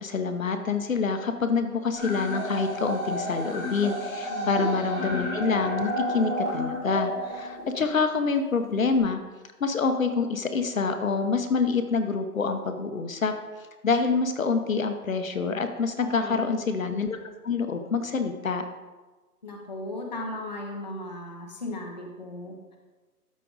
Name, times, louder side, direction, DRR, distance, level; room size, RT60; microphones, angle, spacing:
voice 1, 0.0-9.2 9.6-13.3 13.8-17.2 17.4-18.6, left 4 dB, 55° left, 7 dB, 0.9 m, -26 dB
sound 1, 2.0-7.9, equal, 5° left, 1.1 m, -32 dB
sound 2, 2.9-3.0 3.4-3.5 4.1-8.3 8.9-9.0, right 2 dB, 15° right, 1.4 m, -41 dB
voice 2, 4.3-5.1 16.0-16.7 19.4-22.8, left 1 dB, 30° left, 0 dB, 0.8 m, -37 dB
13.0 x 5.1 x 3.9 m, 1.3 s
hypercardioid pair, 170°, 47 cm